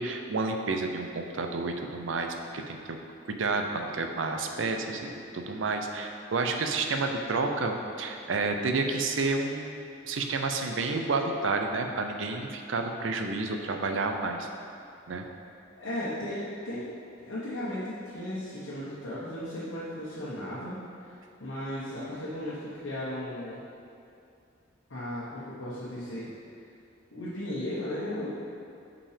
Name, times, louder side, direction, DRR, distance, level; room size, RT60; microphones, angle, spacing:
voice 1, 0.0-3.0 3.2-9.8 10.1-14.5 15.1-15.3, right 3 dB, 75° right, 4 dB, 0.6 m, -30 dB
voice 2, 15.8-17.0 17.2-23.6 24.9-26.3 27.1-28.3, left 1 dB, 80° left, -10 dB, 1.1 m, -36 dB
5.6 x 5.2 x 5.0 m, 2.5 s
head